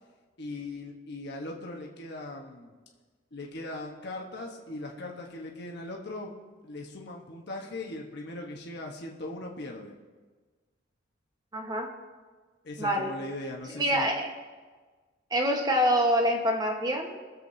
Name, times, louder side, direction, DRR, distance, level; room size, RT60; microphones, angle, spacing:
voice 1, 0.4-2.7 3.3-6.3 6.6-9.9 12.6-14.1, left 2 dB, 60° left, 0 dB, 1.2 m, -39 dB
voice 2, 11.5-11.9 12.8-13.1 13.8-14.3 15.3-17.1, equal, 20° right, 2 dB, 1.2 m, -25 dB
21.5 x 7.5 x 2.7 m, 1.4 s
head